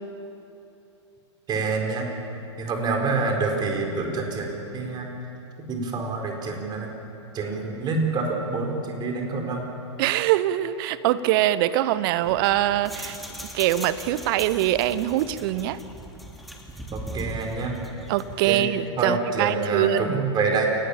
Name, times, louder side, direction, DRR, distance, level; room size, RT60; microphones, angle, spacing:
voice 1, 1.5-2.1 2.6-5.1 5.6-6.9 7.3-9.7 16.9-17.7 18.4-18.6 19.0-20.7, right 3 dB, 30° right, 2 dB, 4.6 m, -27 dB
voice 2, 10.0-13.2 13.5-15.8 18.1-20.2, right 13 dB, 50° right, 15 dB, 1.0 m, -23 dB
sound 1, 12.2-18.4, right 1 dB, ahead, 2.8 m, -39 dB
29.0 x 17.5 x 7.2 m, 2.8 s
figure-of-eight pair, 100°, 15 cm